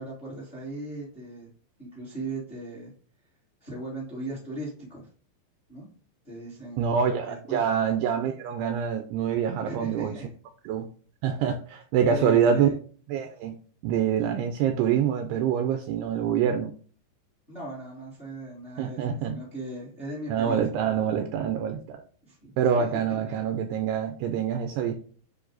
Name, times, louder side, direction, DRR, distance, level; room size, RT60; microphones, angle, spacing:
voice 1, 0.0-1.5 1.8-2.9 3.6-5.1 5.7-5.9 6.2-7.0 7.2-7.6 9.6-10.3 12.1-12.7 17.5-20.6 22.2-22.5 23.3-23.4, right 2 dB, 20° left, -4 dB, 1.5 m, -38 dB
voice 2, 6.8-10.2 10.6-10.9 11.2-12.7 13.1-13.6 13.8-16.7 18.8-19.4 20.3-22.0 22.6-24.9, right 8 dB, 85° right, 7 dB, 2.4 m, -25 dB
9.6 x 3.3 x 3.9 m, 0.42 s
omnidirectional pair, 5.2 m